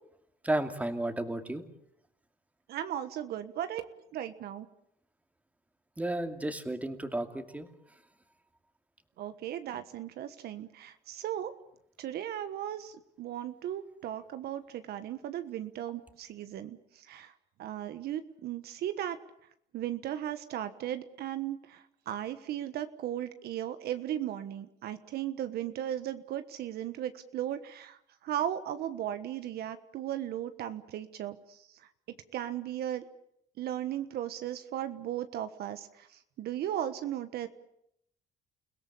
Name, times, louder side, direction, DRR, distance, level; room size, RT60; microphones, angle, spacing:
voice 1, 0.4-1.6 6.0-7.7, right 1 dB, 10° right, 6 dB, 2.5 m, -32 dB
voice 2, 2.7-4.7 9.2-11.5 12.0-16.8 17.1-17.3 17.6-19.2 19.7-28.0 28.2-31.6 32.3-33.0 33.6-36.1 36.4-37.5, right 11 dB, 70° right, 10 dB, 1.4 m, -36 dB
29.5 x 17.0 x 8.5 m, 0.76 s
cardioid pair, 110°, 17 cm